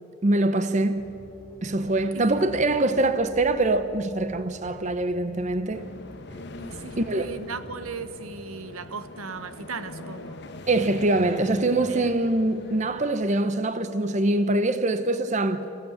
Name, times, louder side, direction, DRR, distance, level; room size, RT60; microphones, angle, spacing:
voice 1, 0.2-1.1 1.6-5.9 7.0-7.4 10.7-15.7, right 2 dB, 35° right, 0.7 m, -24 dB
sound 1, 0.9-8.1, left 1 dB, 5° left, 2.7 m, -47 dB
sound 2, 5.7-13.1, left 2 dB, 50° left, 1.1 m, -42 dB
voice 2, 6.6-10.4 11.9-12.2, right 4 dB, 80° right, 1.1 m, -37 dB
26.0 x 16.0 x 8.9 m
head